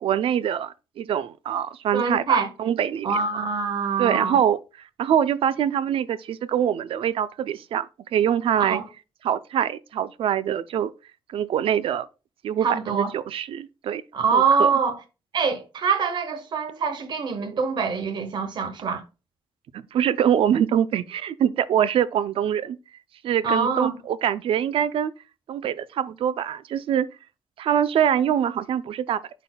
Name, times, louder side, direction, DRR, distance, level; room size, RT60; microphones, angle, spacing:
voice 1, 0.0-3.1 4.0-4.6 5.0-7.9 8.1-8.8 9.2-10.9 11.3-12.1 12.4-14.0 14.3-14.7 19.7-22.8 23.2-25.1 25.5-27.1 27.6-29.2, right 9 dB, 65° right, 0.4 m, -24 dB
voice 2, 1.9-2.5 3.0-4.4 8.7-8.8 12.6-13.1 14.1-15.0 15.3-19.0 23.4-24.0, right 5 dB, 50° right, 1.3 m, -24 dB
10.5 x 4.1 x 2.2 m
wide cardioid pair, 175°, 10 cm